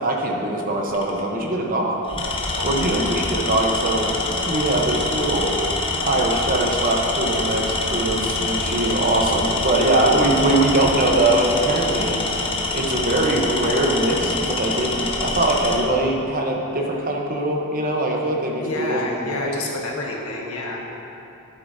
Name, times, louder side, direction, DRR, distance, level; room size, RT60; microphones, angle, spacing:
voice 1, 0.0-2.0 2.6-5.5 6.0-12.2 12.7-19.1 19.4-19.6, right 1 dB, 40° right, 0 dB, 0.9 m, -22 dB
Tools, 0.9-1.2 2.0-15.9, left 2 dB, 25° left, 0.7 m, -25 dB
voice 2, 2.6-3.0 18.6-20.8, left 2 dB, 80° left, -1 dB, 1.3 m, -29 dB
12.0 x 8.1 x 2.7 m, 2.9 s
head